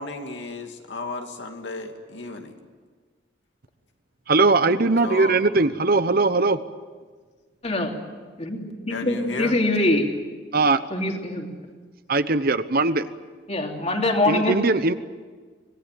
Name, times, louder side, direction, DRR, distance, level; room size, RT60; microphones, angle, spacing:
voice 1, 0.0-2.5 5.0-5.4 8.9-9.6, left 3 dB, 75° left, 4 dB, 2.5 m, -33 dB
voice 2, 4.3-6.6 10.5-10.8 12.1-13.0 14.3-14.9, right 3 dB, 55° right, 12 dB, 1.0 m, -20 dB
voice 3, 7.6-8.0 8.4-10.1 10.9-11.5 13.5-14.6, left 1 dB, 35° left, 2 dB, 3.0 m, -23 dB
25.5 x 18.5 x 9.1 m, 1.5 s
head